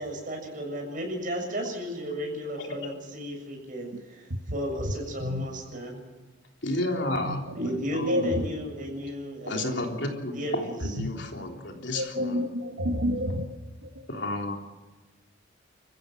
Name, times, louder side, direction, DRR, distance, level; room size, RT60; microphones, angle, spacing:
voice 1, 0.0-6.0 7.5-9.9 10.3-11.0, equal, 40° right, 1 dB, 7.1 m, -34 dB
voice 2, 6.6-7.4 7.9-8.3 9.4-12.4 14.1-14.6, left 1 dB, 60° left, 2 dB, 3.4 m, -31 dB
voice 3, 8.1-8.5 11.0-11.1 11.9-13.5 13.8-13.9, equal, 80° right, 5 dB, 1.9 m, -28 dB
29.0 x 15.0 x 7.8 m, 1.2 s
head